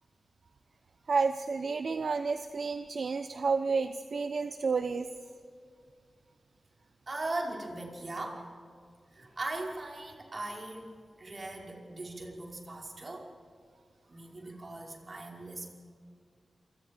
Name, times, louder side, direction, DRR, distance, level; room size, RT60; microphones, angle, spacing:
voice 1, 1.1-5.1, right 4 dB, 65° right, 9 dB, 0.9 m, -30 dB
voice 2, 7.1-8.5 9.1-10.9 11.2-13.3 14.0-15.7, right 2 dB, 40° right, 0 dB, 5.2 m, -39 dB
27.5 x 25.5 x 5.2 m, 2.2 s
wide cardioid pair, 90°, 0 cm